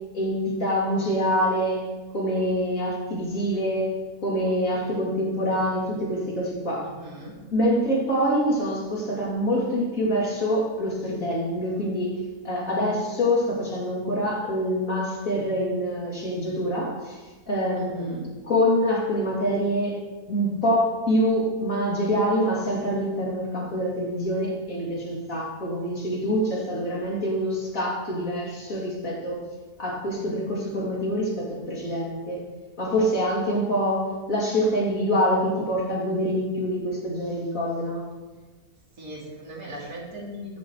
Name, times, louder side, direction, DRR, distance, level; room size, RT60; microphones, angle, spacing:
voice 1, 0.1-1.9 2.1-6.9 7.5-17.2 17.5-29.5 29.8-32.4 32.8-38.0, equal, 60° left, -4 dB, 3.3 m, -25 dB
voice 2, 6.8-7.3 17.8-18.3 39.0-40.6, equal, 65° right, -4 dB, 3.4 m, -39 dB
14.5 x 11.0 x 3.2 m, 1.3 s
omnidirectional pair, 1.6 m